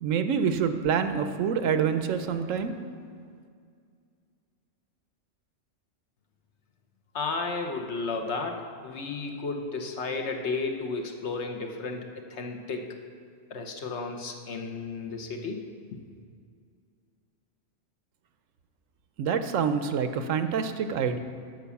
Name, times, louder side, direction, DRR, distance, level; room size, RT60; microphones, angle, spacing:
voice 1, 0.0-2.8 19.2-21.2, right 7 dB, 85° right, 9 dB, 1.0 m, -26 dB
voice 2, 7.1-13.0 13.5-15.6, left 3 dB, 65° left, 3 dB, 1.2 m, -33 dB
9.3 x 6.1 x 7.0 m, 2.2 s
omnidirectional pair, 1.3 m